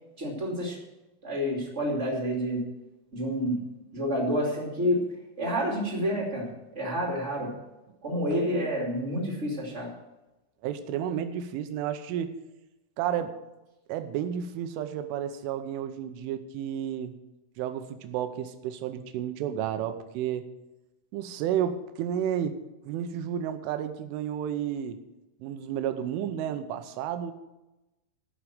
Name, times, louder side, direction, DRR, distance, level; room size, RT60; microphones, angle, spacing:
voice 1, 0.2-0.8 1.2-2.6 3.1-3.6 3.9-5.0 5.4-7.5 8.0-9.9, equal, 25° right, -1 dB, 1.6 m, -29 dB
voice 2, 10.6-12.3 13.0-13.3 13.9-17.1 17.6-20.5 21.1-22.6 22.9-25.0 25.4-27.3, right 9 dB, 85° right, 9 dB, 3.4 m, -31 dB
15.0 x 6.3 x 7.7 m, 1.0 s
omnidirectional pair, 5.6 m